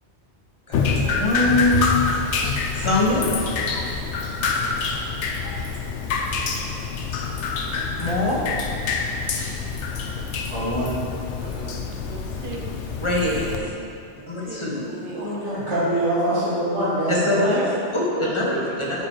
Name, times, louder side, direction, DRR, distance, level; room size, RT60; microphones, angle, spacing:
Drip, 0.7-13.6, left 5 dB, 75° left, 1.0 m, -26 dB
voice 1, 0.7-1.9 2.7-3.3 8.0-8.4 9.3-9.5 13.0-13.4 14.3-15.2 17.1-17.6 17.9-19.1, left 1 dB, 25° left, -4 dB, 1.3 m, -23 dB
voice 2, 10.4-11.0 15.2-17.5, right 1 dB, 80° right, -13 dB, 2.6 m, -24 dB
voice 3, 11.4-12.7 13.2-13.7 14.4-15.3 17.4-17.8 18.2-19.1, right 3 dB, 50° right, -1 dB, 1.1 m, -35 dB
9.2 x 4.9 x 4.6 m, 2.6 s
omnidirectional pair, 1.2 m